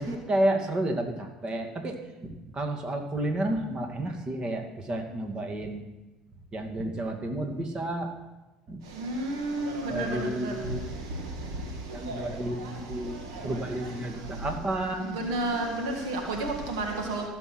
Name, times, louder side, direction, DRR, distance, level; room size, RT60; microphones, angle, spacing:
voice 1, 0.0-2.3 2.5-5.8 6.5-8.1 8.7-8.8 9.9-10.9 11.9-13.2 13.4-15.2, right 1 dB, 35° right, 4 dB, 2.2 m, -31 dB
voice 2, 9.1-10.1 10.4-10.5 15.2-17.2, right 2 dB, 85° right, 2 dB, 1.9 m, -30 dB
15.5 x 7.1 x 6.1 m, 1.0 s
hypercardioid pair, 80°, 3 cm